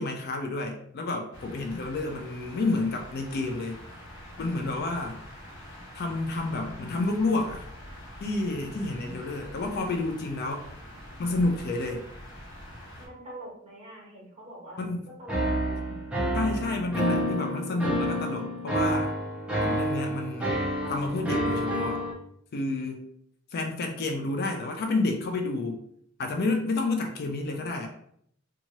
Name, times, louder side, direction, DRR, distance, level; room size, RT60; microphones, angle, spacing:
voice 1, 0.0-3.8 4.4-5.2 5.9-7.7 8.2-10.6 11.2-12.1 14.8-15.0 15.9-16.0 16.3-19.1 19.6-20.6 20.9-22.0 22.5-23.0 23.5-25.8 26.2-27.9, left 2 dB, 50° left, 3 dB, 0.4 m, -30 dB
sound 1, 1.3-13.1, equal, 75° left, 1.1 m, -45 dB
voice 2, 8.5-9.3 13.0-14.8 15.2-16.0, right 1 dB, 30° right, -5 dB, 1.3 m, -45 dB
sound 2, 15.3-22.1, equal, 5° right, 0.6 m, -28 dB
2.7 x 2.4 x 2.9 m, 0.68 s
head